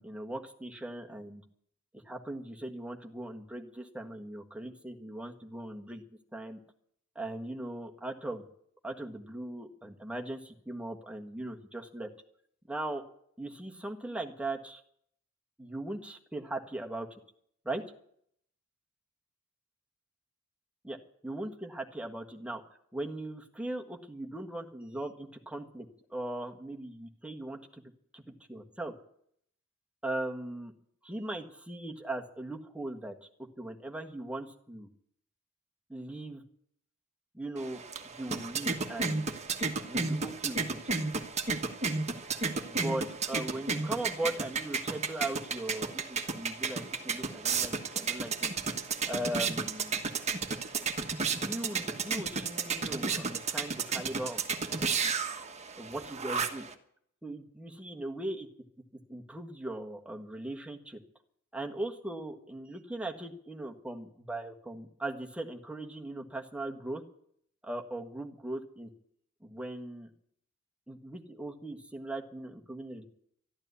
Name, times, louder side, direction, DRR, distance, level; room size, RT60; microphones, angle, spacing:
voice 1, 0.0-1.4 2.0-6.0 6.3-6.6 7.1-8.4 8.8-12.1 12.7-13.0 13.4-14.8 15.6-17.1 17.6-17.8 20.8-21.0 21.2-22.6 22.9-27.8 28.1-28.2 28.5-28.9 30.0-30.7 31.0-33.3 33.6-34.9 35.9-36.4 37.3-37.8 38.1-39.3 39.9-40.8 42.7-48.5 49.0-50.1 51.3-54.4 54.8-55.1 55.8-56.6 57.2-58.5 59.1-61.0 61.5-67.0 67.6-68.9 69.4-70.1 70.9-73.0, right 1 dB, 5° right, 2 dB, 1.5 m, -39 dB
sound 1, 37.6-56.7, right 4 dB, 30° right, 1.3 m, -33 dB
12.5 x 12.0 x 8.2 m, 0.67 s
head